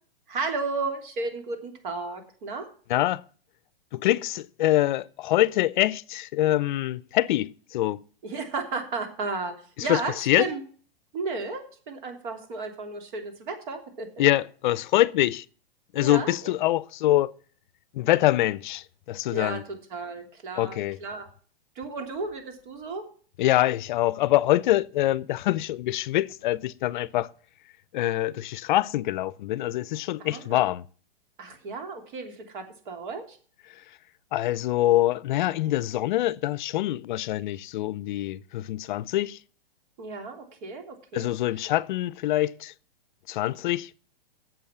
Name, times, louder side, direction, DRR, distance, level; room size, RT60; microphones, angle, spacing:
voice 1, 0.3-2.7 8.2-9.5 9.8-10.6 11.1-14.3 15.9-16.5 19.3-21.3 21.7-23.0 30.2-30.6 31.4-33.4 40.0-41.3 41.6-41.7, right 3 dB, 55° right, 3.1 m, -34 dB
voice 2, 2.9-3.2 3.9-8.0 9.8-10.5 14.2-15.4 15.9-17.3 17.9-19.6 20.6-21.0 23.4-27.3 27.9-30.8 34.3-39.4 41.1-42.7 43.3-43.9, left 15 dB, 55° left, 0.6 m, -25 dB
8.5 x 7.4 x 7.4 m
hypercardioid pair, 140°, 30 cm